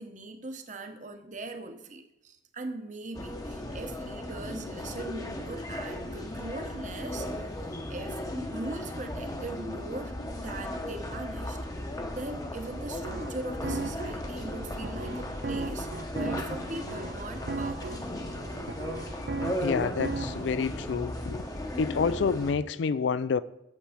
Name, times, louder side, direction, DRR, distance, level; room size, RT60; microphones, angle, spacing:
voice 1, 0.0-7.3 7.9-8.2 8.5-11.6 12.1-18.0, right 2 dB, 40° right, 0.9 m, -40 dB
sound 1, 3.1-22.5, left 1 dB, 20° left, 0.9 m, -36 dB
sound 2, 8.1-8.3 8.8-9.1 9.5-9.7 10.2-10.4 10.8-11.0 11.6-11.8 12.3-12.4 12.9-13.1 13.7-13.9 14.4-14.6 15.1-15.3 15.6-16.0 16.5-16.6 17.2-17.3, equal, 45° left, 1.0 m, -50 dB
sound 3, 12.8-20.5, right 3 dB, 55° right, 0.5 m, -37 dB
voice 2, 19.6-21.5 21.8-23.4, left 5 dB, 70° left, 0.4 m, -28 dB
8.4 x 7.5 x 5.0 m
head